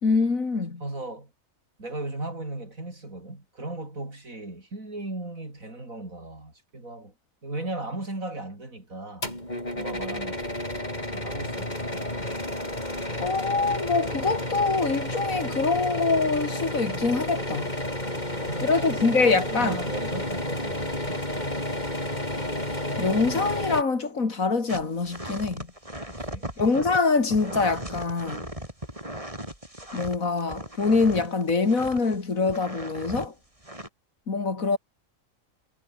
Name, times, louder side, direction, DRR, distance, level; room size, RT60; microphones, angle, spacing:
voice 1, 0.0-0.8 13.2-17.7 18.6-19.8 23.0-25.7 26.6-28.5 29.9-33.3 34.3-34.8, left 4 dB, 85° left, 3.2 m, -24 dB
voice 2, 0.8-1.3 1.8-7.1 7.4-9.3 9.7-12.1 18.1-21.2 26.2-26.5, right 2 dB, 85° right, 6.5 m, -37 dB
sound 1, 9.2-23.8, left 1 dB, 30° left, 7.8 m, -31 dB
sound 2, 24.7-32.2 32.5-33.3 33.6-33.9, right 1 dB, 25° right, 7.1 m, -37 dB
omnidirectional pair, 1.4 m